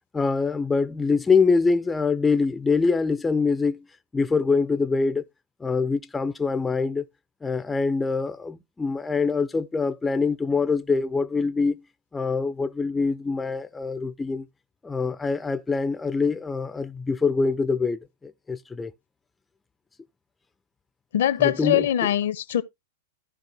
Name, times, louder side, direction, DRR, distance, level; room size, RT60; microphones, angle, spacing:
voice 1, 0.1-3.8 4.1-5.2 5.6-7.0 7.4-11.8 12.1-14.5 14.8-18.9 21.4-22.1, left 4 dB, 10° left, 0.4 m, -24 dB
voice 2, 21.1-22.6, left 11 dB, 70° left, 0.7 m, -22 dB
14.5 x 5.1 x 2.8 m
hypercardioid pair, 105°, 0 cm